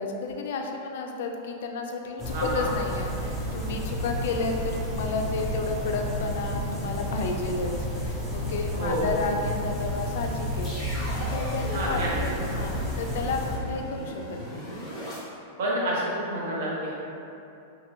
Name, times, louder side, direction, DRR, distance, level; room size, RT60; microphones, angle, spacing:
voice 1, 0.0-7.7 8.0-14.2 14.5-14.7, left 3 dB, 65° left, 3 dB, 0.3 m, -32 dB
sound 1, 2.2-13.6, equal, 5° right, 0.4 m, -31 dB
voice 2, 2.3-2.7 8.7-9.1 11.7-12.3 15.6-16.9, right 1 dB, 60° right, -5 dB, 0.8 m, -29 dB
sound 2, 9.9-15.2, equal, 10° left, 0.9 m, -38 dB
2.8 x 2.6 x 2.6 m, 2.7 s
supercardioid pair, 160°, 0 cm